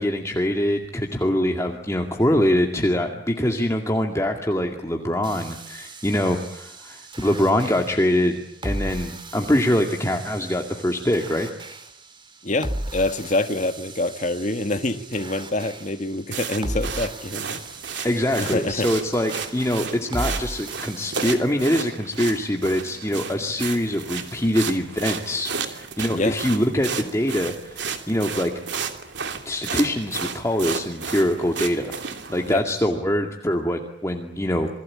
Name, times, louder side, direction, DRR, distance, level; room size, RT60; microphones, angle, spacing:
voice 1, 0.0-11.5 18.0-28.9 29.4-31.9 32.3-34.7, left 1 dB, 15° left, 2.2 m, -24 dB
sound 1, 5.2-21.4, right 1 dB, 25° right, 3.6 m, -37 dB
voice 2, 12.4-17.6 17.9-18.1 18.4-18.9 26.1-26.4 32.5-32.6, left 2 dB, 40° left, 1.7 m, -26 dB
sound 2, 16.3-32.5, right 6 dB, 65° right, 3.0 m, -33 dB
28.5 x 22.0 x 8.7 m
head